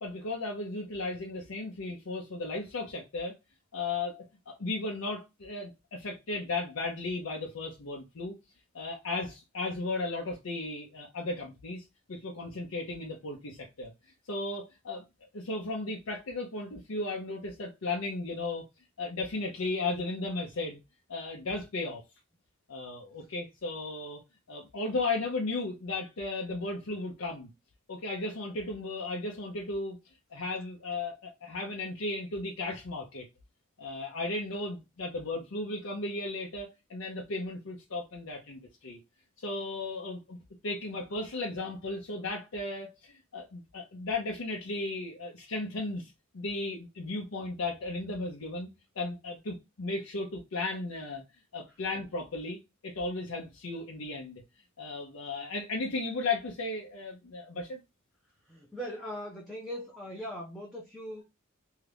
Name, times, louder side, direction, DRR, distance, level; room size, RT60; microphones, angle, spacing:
voice 1, 0.0-3.3 3.7-8.3 8.7-13.9 14.3-15.0 15.3-18.6 19.0-20.8 21.1-22.0 22.7-24.2 24.5-27.5 27.9-30.0 30.3-33.3 33.8-39.0 39.4-40.4 40.6-48.7 49.0-51.2 51.5-52.6 52.8-54.4 54.8-57.8, left 2 dB, 75° left, 0.7 m, -35 dB
voice 2, 58.4-61.2, equal, ahead, 0.5 m, -40 dB
2.8 x 2.4 x 3.3 m
head